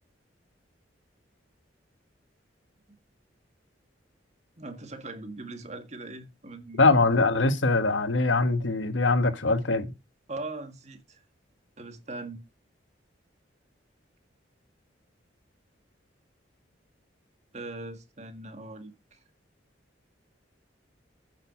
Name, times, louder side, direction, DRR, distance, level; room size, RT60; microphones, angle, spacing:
voice 1, 4.6-6.9 10.3-11.2 11.8-12.4 17.5-19.2, right 2 dB, 35° right, 1.8 m, -40 dB
voice 2, 6.8-9.9, left 3 dB, 90° left, 1.4 m, -22 dB
9.0 x 6.4 x 5.9 m
head